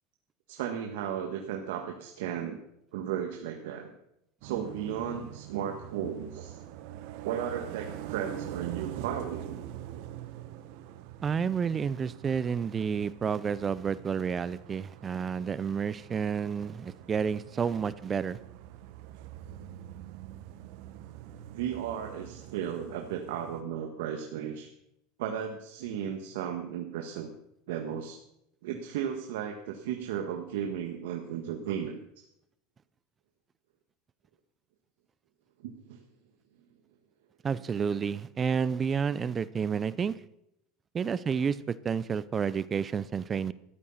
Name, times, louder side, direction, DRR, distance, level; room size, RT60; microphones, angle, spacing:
voice 1, 0.5-2.6 2.9-3.9 4.4-6.6 7.2-9.6 21.5-24.7 25.2-27.3 27.7-28.2 28.6-32.0 35.6-36.0, right 9 dB, 80° right, 3 dB, 1.6 m, -35 dB
sound 1, 4.4-23.6, right 11 dB, 60° right, 1.1 m, -44 dB
voice 2, 11.2-18.4 37.4-40.1 40.9-43.5, right 6 dB, 20° right, 17 dB, 0.5 m, -30 dB
14.0 x 11.5 x 5.7 m, 0.79 s
supercardioid pair, 150°, 0 cm